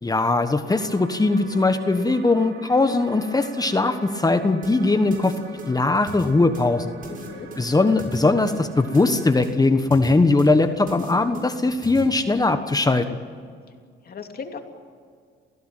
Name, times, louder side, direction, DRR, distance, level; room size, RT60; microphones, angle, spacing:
voice 1, 0.0-5.4 5.7-7.0 7.6-13.2, left 3 dB, 20° left, 8 dB, 1.3 m, -20 dB
sound 1, 0.7-9.5, right 6 dB, 70° right, 3.0 m, -43 dB
sound 2, 4.6-12.0, right 1 dB, 45° right, 6.8 m, -39 dB
voice 2, 7.1-7.5 14.0-14.6, left 5 dB, 50° left, 4 dB, 2.8 m, -36 dB
30.0 x 16.5 x 9.0 m, 2.1 s
cardioid pair, 90°, 20 cm